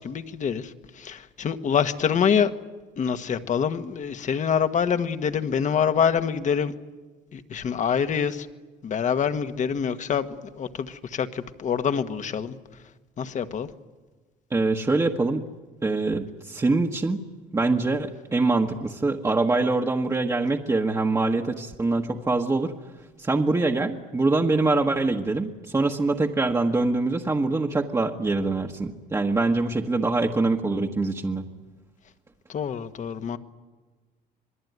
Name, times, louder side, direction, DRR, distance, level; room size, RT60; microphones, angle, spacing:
voice 1, 0.0-2.5 3.0-6.7 7.3-8.5 8.8-12.6 13.2-13.7 32.5-33.4, left 7 dB, 45° left, 9 dB, 1.6 m, -26 dB
voice 2, 14.5-15.4 15.8-17.3 17.5-22.7 23.2-31.5, right 3 dB, 20° right, 1 dB, 1.4 m, -24 dB
27.0 x 20.5 x 9.6 m, 1.3 s
cardioid pair, 110°, 17 cm